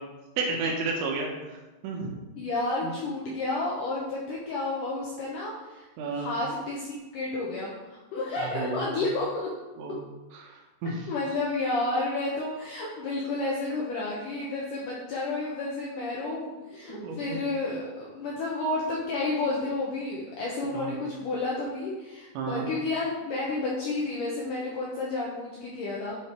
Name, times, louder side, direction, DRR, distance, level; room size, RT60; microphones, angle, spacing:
voice 1, 0.4-1.3 1.8-2.1 2.8-2.9 6.0-6.3 8.4-9.0 9.8-10.0 10.4-11.0 16.9-17.4 20.7-20.9 22.4-22.7, right 4 dB, 80° right, -1 dB, 3.5 m, -31 dB
voice 2, 2.4-9.5 11.1-26.2, left 2 dB, 75° left, -4 dB, 1.9 m, -31 dB
9.9 x 4.7 x 4.4 m, 1.1 s
omnidirectional pair, 5.1 m